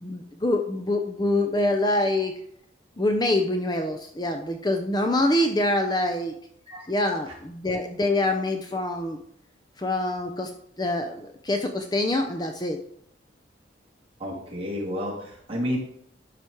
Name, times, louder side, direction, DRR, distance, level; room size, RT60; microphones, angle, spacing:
voice 1, 0.0-2.3 3.0-6.3 6.9-9.2 9.8-10.5 10.8-12.8, left 1 dB, 20° left, 5 dB, 0.6 m, -25 dB
voice 2, 14.2-15.8, equal, 30° right, -2 dB, 2.1 m, -31 dB
11.5 x 5.0 x 4.5 m, 0.68 s
head